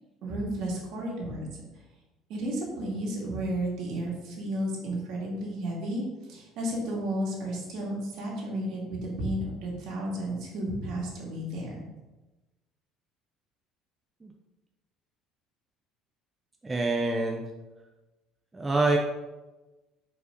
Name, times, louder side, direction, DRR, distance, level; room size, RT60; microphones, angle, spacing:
voice 1, 0.2-1.5 2.3-6.0 6.3-11.8, right 1 dB, 65° right, -3 dB, 2.1 m, -32 dB
voice 2, 16.6-17.5 18.5-19.0, right 2 dB, 15° right, 1 dB, 0.5 m, -26 dB
4.8 x 4.0 x 5.1 m, 1.1 s
cardioid pair, 140°, 0 cm